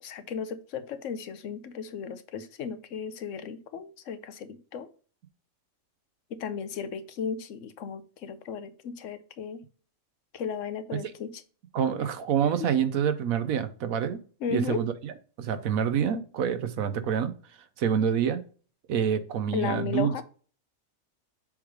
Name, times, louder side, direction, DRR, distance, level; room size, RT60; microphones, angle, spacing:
voice 1, 0.0-4.9 6.3-9.6 10.3-11.4 12.6-12.7 14.4-14.8 19.5-20.2, left 6 dB, 70° left, 12 dB, 1.0 m, -35 dB
voice 2, 11.7-14.2 14.5-15.1 15.4-17.3 17.8-18.4 18.9-20.2, right 8 dB, 85° right, 11 dB, 1.2 m, -27 dB
7.0 x 3.3 x 4.9 m, 0.39 s
omnidirectional pair, 1.4 m